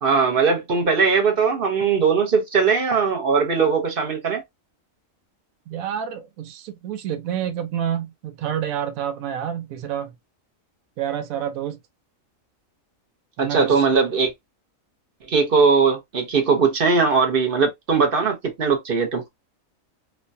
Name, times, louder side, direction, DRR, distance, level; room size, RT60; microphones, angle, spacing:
voice 1, 0.0-4.4 13.4-14.3 15.3-19.3, right 5 dB, 50° right, 0.8 m, -20 dB
voice 2, 5.7-10.1 11.0-11.8 13.4-13.8, right 9 dB, 90° right, 1.0 m, -28 dB
3.1 x 2.2 x 2.5 m
omnidirectional pair, 1.4 m